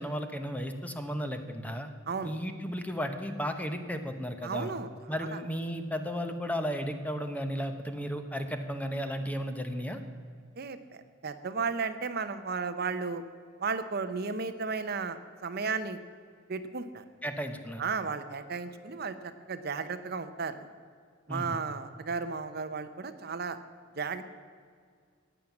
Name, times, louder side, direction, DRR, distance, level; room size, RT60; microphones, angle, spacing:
voice 1, 0.0-1.9 2.2-4.7 5.1-10.0 17.2-17.8 21.3-21.6, equal, 10° left, 7 dB, 1.0 m, -34 dB
voice 2, 4.4-4.9 5.3-5.4 10.6-10.8 11.2-13.2 13.6-16.0 16.5-17.0 17.8-20.7 21.3-23.6 23.9-24.2, right 4 dB, 50° right, 11 dB, 0.7 m, -34 dB
14.5 x 9.2 x 7.2 m, 2.1 s
head